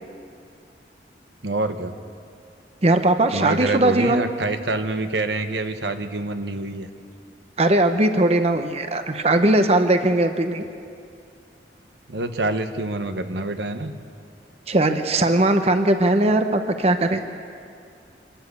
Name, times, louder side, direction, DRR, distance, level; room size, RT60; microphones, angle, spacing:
voice 1, 1.4-1.9 3.3-6.9 12.1-13.9, right 2 dB, 80° right, 8 dB, 1.1 m, -26 dB
voice 2, 2.8-4.3 7.6-10.6 14.7-17.2, right 2 dB, 35° right, 7 dB, 0.8 m, -19 dB
25.0 x 13.5 x 8.2 m, 2.4 s
head